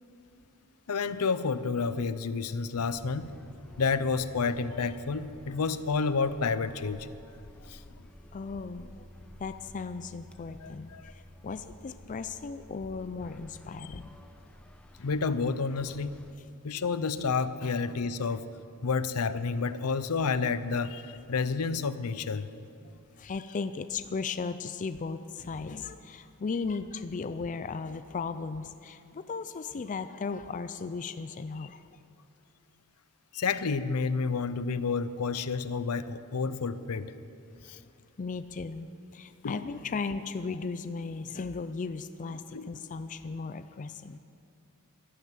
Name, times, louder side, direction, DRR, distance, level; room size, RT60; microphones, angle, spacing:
voice 1, 0.9-3.3 3.8-7.1 7.7-8.1 10.6-11.1 13.9-14.0 15.0-16.2 16.6-18.5 18.8-22.5 33.3-37.1 37.6-37.8 39.4-39.6 42.5-42.7, left 4 dB, 85° left, 14 dB, 0.6 m, -30 dB
sound 1, 2.7-16.3, equal, 5° left, 0.8 m, -52 dB
voice 2, 8.3-9.1 9.4-14.2 16.8-16.9 23.2-31.8 37.7-37.8 38.2-38.9 39.1-44.2, left 4 dB, 35° left, 11 dB, 0.4 m, -36 dB
12.5 x 11.5 x 7.6 m, 2.5 s
head